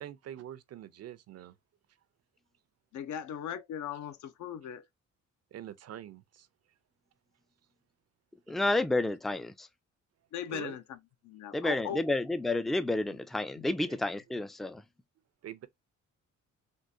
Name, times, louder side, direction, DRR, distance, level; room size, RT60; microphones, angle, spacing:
voice 1, 0.0-1.6 5.5-6.5 10.5-10.8 13.8-14.0 15.4-15.7, right 11 dB, 55° right, 0.5 m, -44 dB
voice 2, 2.9-4.9 10.3-11.0 11.2-12.1 13.1-13.2 13.6-13.7, left 9 dB, 70° left, 0.7 m, -39 dB
voice 3, 8.5-9.7 11.5-14.8, left 2 dB, ahead, 0.3 m, -30 dB
3.7 x 2.4 x 2.6 m
cardioid pair, 90°, 30 cm